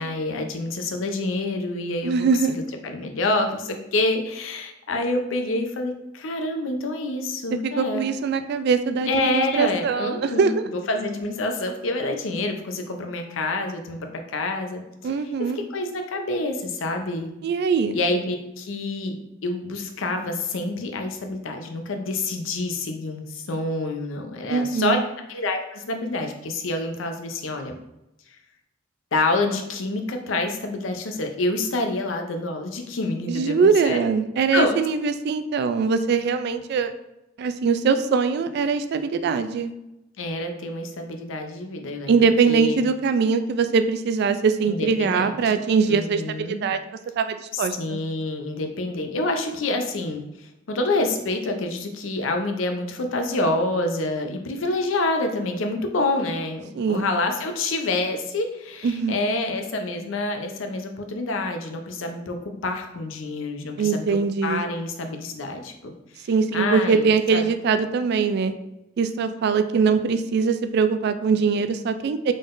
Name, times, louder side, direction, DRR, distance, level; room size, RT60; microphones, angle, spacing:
voice 1, 0.0-2.3 2.8-8.0 9.1-14.8 15.4-17.3 17.9-19.2 19.4-25.0 25.3-27.7 29.1-34.0 34.5-34.8 40.2-42.9 44.7-45.4 45.9-46.6 47.5-64.2 64.4-65.9 66.5-67.4, left 2 dB, 85° left, 5 dB, 0.6 m, -27 dB
voice 2, 2.0-2.5 7.6-10.5 15.0-15.6 17.4-18.0 24.5-25.0 33.3-36.9 37.4-39.7 42.1-46.8 47.2-48.0 56.8-57.1 58.8-59.2 63.8-64.6 66.3-68.5 69.0-72.3, right 5 dB, 55° right, 10 dB, 0.3 m, -22 dB
3.7 x 3.7 x 2.5 m, 0.89 s
head